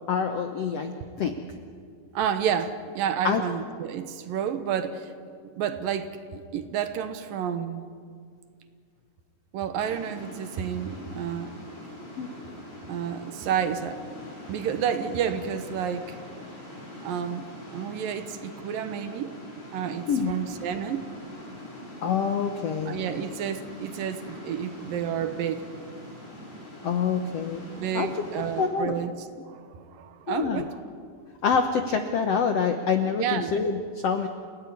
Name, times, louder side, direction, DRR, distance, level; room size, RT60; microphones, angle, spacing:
voice 1, 0.1-1.4 3.2-3.4 12.2-12.3 20.1-20.3 22.0-22.9 26.8-27.6 27.9-28.1 28.6-28.9 30.3-30.6 31.4-34.3, left 6 dB, 70° left, 6 dB, 1.5 m, -26 dB
voice 2, 2.1-5.1 5.6-7.9 9.5-11.5 12.9-14.2 14.5-16.2 17.0-19.3 19.7-21.1 22.9-25.7 27.7-30.8 33.2-33.6, right 8 dB, 70° right, 10 dB, 2.7 m, -30 dB
sound 1, 9.8-28.7, left 1 dB, 15° left, 5.8 m, -43 dB
29.5 x 16.5 x 9.5 m, 2.1 s
omnidirectional pair, 4.3 m